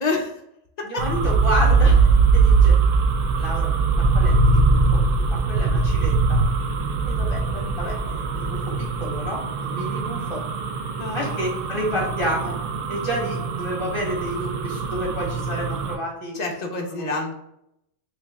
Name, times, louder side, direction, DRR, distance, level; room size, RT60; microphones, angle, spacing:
voice 1, 0.0-0.4 0.9-1.0 11.0-12.0 16.3-17.3, left 3 dB, 50° left, 1 dB, 0.5 m, -28 dB
voice 2, 0.8-2.8 3.4-3.7 4.0-6.4 7.0-10.4 11.1-12.5 12.9-16.5 16.9-17.3, equal, 25° left, -4 dB, 0.9 m, -30 dB
sound 1, 1.0-16.0, right 4 dB, 85° right, 0.9 m, -21 dB
3.1 x 2.7 x 3.4 m, 0.79 s
omnidirectional pair, 1.3 m